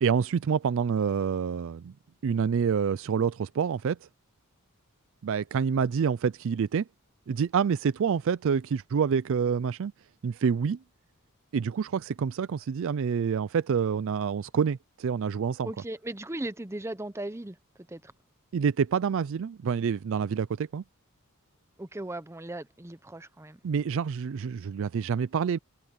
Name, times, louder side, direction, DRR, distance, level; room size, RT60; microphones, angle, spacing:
voice 1, 0.0-1.9 2.2-4.0 5.2-6.9 7.3-9.9 10.2-10.8 11.5-15.7 18.5-20.8 23.6-25.6, right 6 dB, 60° right, 0.4 m, -27 dB
voice 2, 15.6-17.6 17.9-18.1 21.8-23.6, right 1 dB, 10° right, 0.7 m, -37 dB
open air
head